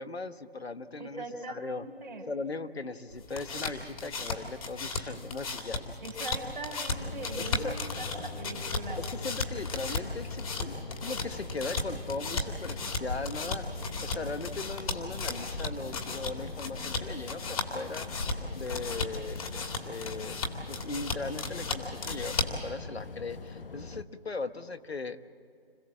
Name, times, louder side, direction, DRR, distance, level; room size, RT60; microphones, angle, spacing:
voice 1, 0.0-1.8 2.3-6.0 7.6-7.8 9.0-13.6 14.0-18.1 18.5-20.4 20.7-25.2, left 3 dB, 85° left, 10 dB, 1.4 m, -38 dB
voice 2, 1.0-2.3 6.0-9.0, right 2 dB, 55° right, 4 dB, 3.6 m, -41 dB
sound 1, 3.1-22.7, left 3 dB, 35° left, 2.5 m, -36 dB
sound 2, 6.9-24.0, left 3 dB, 60° left, 1.3 m, -41 dB
26.5 x 16.5 x 7.5 m, 2.4 s
figure-of-eight pair, 160°, 31 cm